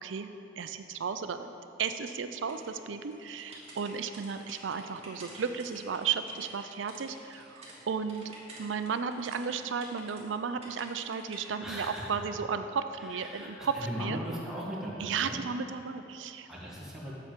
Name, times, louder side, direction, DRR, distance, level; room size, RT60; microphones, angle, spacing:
voice 1, 0.0-1.5 1.8-8.3 8.6-14.2 15.0-16.5, right 6 dB, 75° right, 9 dB, 0.5 m, -34 dB
sound 1, 2.5-7.8 8.1-10.2 10.6-11.4, right 2 dB, 35° right, 1.8 m, -50 dB
voice 2, 11.6-12.2 13.1-15.4 16.5-17.1, equal, 5° right, -6 dB, 1.5 m, -38 dB
8.1 x 7.0 x 4.5 m, 2.8 s
head